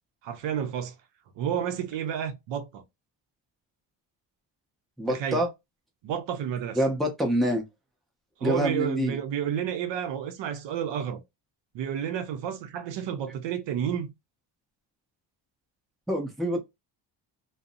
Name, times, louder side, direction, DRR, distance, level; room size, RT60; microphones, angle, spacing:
voice 1, 0.2-0.9 1.4-2.8 5.1-5.4 6.0-6.8 8.4-11.2 11.7-14.1, right 9 dB, 70° right, 0.6 m, -30 dB
voice 2, 5.0-5.5 6.8-7.6 8.4-9.2 16.1-16.6, equal, ahead, 0.5 m, -26 dB
2.5 x 2.0 x 2.5 m
cardioid pair, 140°, 46 cm